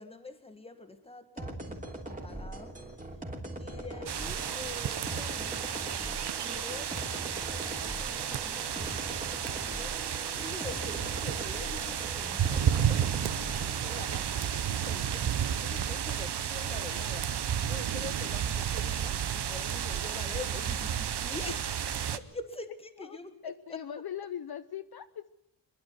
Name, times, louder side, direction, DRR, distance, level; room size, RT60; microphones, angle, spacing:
voice 1, 0.0-2.9 3.6-21.7 22.1-23.8, left 2 dB, 15° left, 1.8 m, -46 dB
sound 1, 1.4-14.3, right 1 dB, 20° right, 3.1 m, -41 dB
sound 2, 4.1-22.2, right 9 dB, 65° right, 1.0 m, -32 dB
voice 2, 23.4-25.3, left 9 dB, 55° left, 0.7 m, -40 dB
24.5 x 11.5 x 9.5 m
wide cardioid pair, 145°, 44 cm